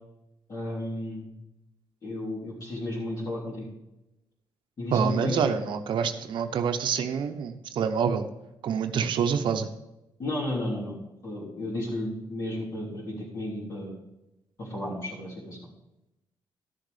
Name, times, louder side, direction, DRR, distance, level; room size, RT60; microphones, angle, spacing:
voice 1, 0.5-1.3 2.0-3.7 4.8-5.4 10.2-11.0 11.2-13.9 14.6-15.6, left 1 dB, 45° left, -7 dB, 3.2 m, -33 dB
voice 2, 4.9-8.2 8.6-9.7, right 7 dB, 70° right, 7 dB, 0.8 m, -26 dB
13.0 x 6.7 x 4.9 m, 0.91 s
cardioid pair, 135°, 8 cm